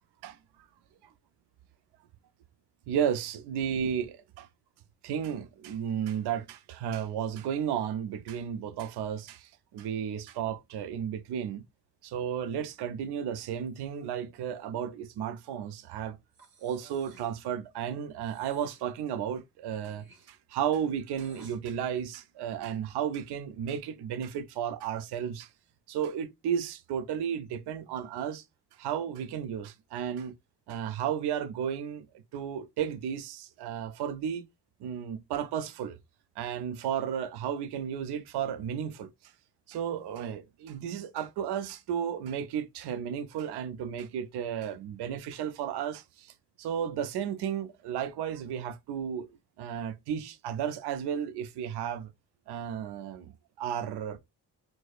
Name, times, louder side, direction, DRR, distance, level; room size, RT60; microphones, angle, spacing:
voice 1, 2.9-4.5 5.0-11.6 12.0-16.2 16.6-25.5 25.9-28.4 28.7-30.3 30.7-34.5 34.8-36.0 36.4-39.3 39.7-49.3 49.6-52.1 52.5-53.3 53.6-54.2, right 8 dB, 75° right, 0.5 m, -33 dB
Breathing, 16.3-17.4 18.2-18.9 19.6-21.6, right 3 dB, 60° right, 1.3 m, -56 dB
4.7 x 2.1 x 2.3 m
cardioid pair, 70°, 40 cm